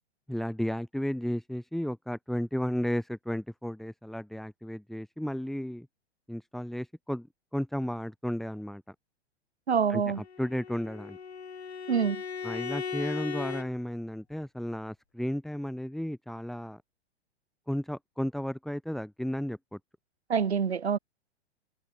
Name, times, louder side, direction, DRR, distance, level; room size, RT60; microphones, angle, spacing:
voice 1, 0.3-5.9 6.3-7.3 7.5-8.9 9.9-11.2 12.4-16.8 17.7-19.8, equal, ahead, 1.6 m, -33 dB
voice 2, 9.7-10.2 11.9-12.2 20.3-21.0, right 6 dB, 70° right, 3.3 m, -26 dB
Bowed string instrument, 10.1-13.7, left 6 dB, 70° left, 4.0 m, -37 dB
figure-of-eight pair, 105°, 34 cm